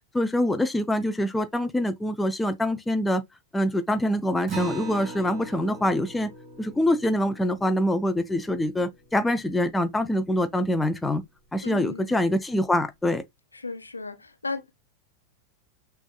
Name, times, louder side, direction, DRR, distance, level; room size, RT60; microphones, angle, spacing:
voice 1, 0.1-3.2 3.5-6.3 6.6-11.2 11.5-13.2, left 1 dB, 10° left, 0.4 m, -25 dB
Acoustic guitar, 4.5-9.4, right 4 dB, 25° right, 2.1 m, -40 dB
voice 2, 11.6-12.3 13.5-14.7, left 3 dB, 80° left, 0.9 m, -35 dB
5.9 x 2.4 x 2.3 m
figure-of-eight pair, 90°, 0 cm